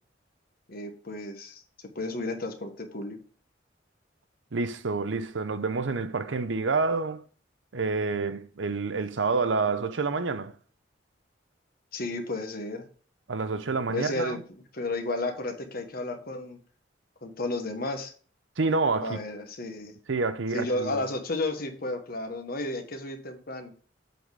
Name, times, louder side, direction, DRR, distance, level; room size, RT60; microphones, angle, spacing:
voice 1, 0.7-1.6 1.9-3.2 11.9-12.9 13.9-14.4 14.7-16.6 17.2-18.1 19.0-19.9 20.5-23.7, left 2 dB, 55° left, 1.2 m, -32 dB
voice 2, 4.5-7.2 7.7-10.5 13.3-14.4 18.6-19.2 20.1-21.1, right 4 dB, 80° right, 0.7 m, -28 dB
7.9 x 4.2 x 4.7 m
head